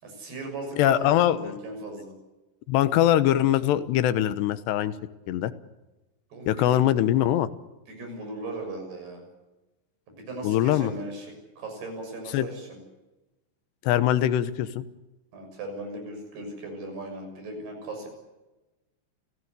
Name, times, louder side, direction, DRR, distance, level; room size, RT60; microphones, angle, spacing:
voice 1, 0.0-2.1 6.3-6.9 7.9-9.2 10.1-12.8 15.3-18.1, right 2 dB, 75° right, 4 dB, 8.6 m, -38 dB
voice 2, 0.8-1.5 2.7-4.9 5.3-5.5 6.5-7.5 10.4-10.9 12.3-12.5 13.8-14.8, left 12 dB, 85° left, 13 dB, 3.2 m, -22 dB
29.5 x 16.0 x 8.2 m, 1.1 s
omnidirectional pair, 4.7 m